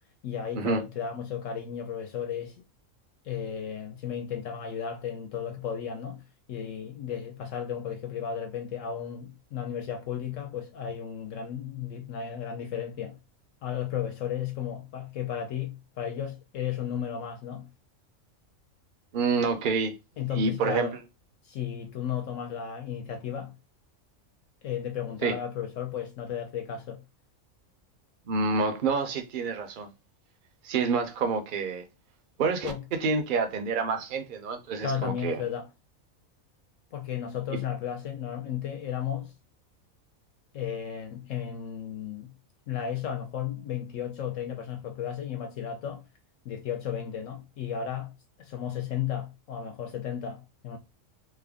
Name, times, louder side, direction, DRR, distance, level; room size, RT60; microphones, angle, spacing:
voice 1, 0.2-2.6 3.2-6.2 6.5-13.2 13.6-17.7 20.2-21.0 21.4-23.5 24.6-27.0 32.6-32.8 34.8-35.7 36.9-39.3 40.5-42.3 42.7-46.0 46.4-48.1 48.4-50.8, left 8 dB, 70° left, 0.9 m, -34 dB
voice 2, 19.1-19.9 20.3-20.9 25.2-25.4 28.3-29.9 30.6-31.8 32.4-32.7 33.0-35.4 37.5-37.6, right 4 dB, 50° right, 0.6 m, -28 dB
3.3 x 2.1 x 3.4 m
omnidirectional pair, 1.5 m